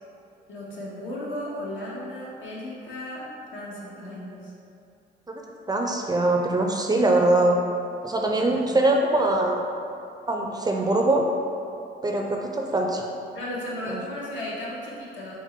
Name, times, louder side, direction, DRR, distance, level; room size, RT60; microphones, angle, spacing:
voice 1, 0.5-4.5 8.4-8.8 13.3-15.4, left 1 dB, 70° left, -5 dB, 1.1 m, -35 dB
voice 2, 5.7-7.6 8.0-9.6 10.3-11.3 12.0-13.0 13.9-14.0, right 2 dB, 20° right, 0 dB, 0.4 m, -22 dB
4.3 x 2.2 x 4.4 m, 2.6 s
cardioid pair, 90°, 20 cm